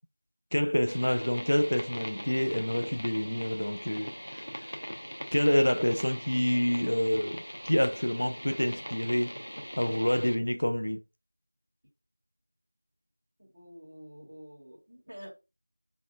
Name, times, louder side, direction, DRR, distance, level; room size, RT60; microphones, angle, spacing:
voice 1, 0.5-4.7 5.3-9.3 9.8-11.0, equal, 45° left, 0.4 m, -27 dB
sound 1, 0.9-10.4, equal, 85° left, 0.8 m, -41 dB
voice 2, 13.4-15.4, equal, 15° right, 1.6 m, -48 dB
3.5 x 3.5 x 2.3 m
figure-of-eight pair, 175°, 0 cm